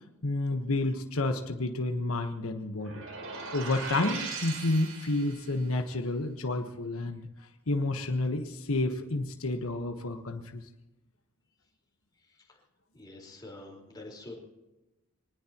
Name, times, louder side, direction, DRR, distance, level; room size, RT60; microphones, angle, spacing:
voice 1, 0.2-2.9 3.5-7.2 7.7-10.6, left 2 dB, 90° left, 5 dB, 1.3 m, -30 dB
sound 1, 2.8-5.6, right 4 dB, 75° right, 4.6 m, -39 dB
voice 2, 12.9-14.3, left 2 dB, 20° left, -2 dB, 4.5 m, -46 dB
24.0 x 20.0 x 3.0 m, 1.0 s
head